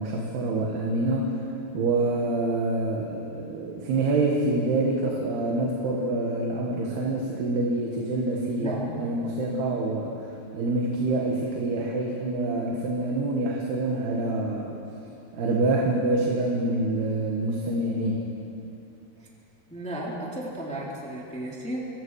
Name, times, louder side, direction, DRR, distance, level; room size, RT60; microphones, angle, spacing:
voice 1, 0.0-1.3 1.7-10.3 10.5-14.8 15.3-18.2, right 2 dB, 80° right, -1 dB, 3.7 m, -26 dB
voice 2, 8.6-9.0 19.2-19.3 19.7-21.9, right 1 dB, ahead, -4 dB, 2.6 m, -34 dB
28.0 x 23.0 x 4.9 m, 2.8 s
omnidirectional pair, 4.6 m